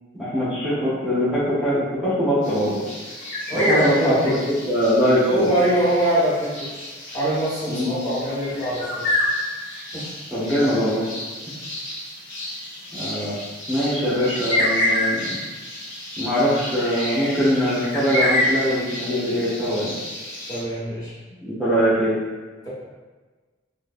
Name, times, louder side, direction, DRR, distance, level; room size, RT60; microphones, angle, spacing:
voice 1, 0.2-2.8 3.5-4.1 4.4-5.5 7.7-8.0 10.3-11.0 12.9-13.4 13.7-15.4 16.2-19.9 21.4-22.2, equal, 5° right, -12 dB, 0.9 m, -22 dB
sound 1, 2.4-20.6, left 1 dB, 75° left, 1.2 m, -29 dB
voice 2, 3.5-4.4 5.3-6.7 7.1-9.1 9.9-10.1 20.5-21.1 22.6-22.7, right 1 dB, 20° left, -9 dB, 1.3 m, -23 dB
3.8 x 2.6 x 2.5 m, 1.3 s
head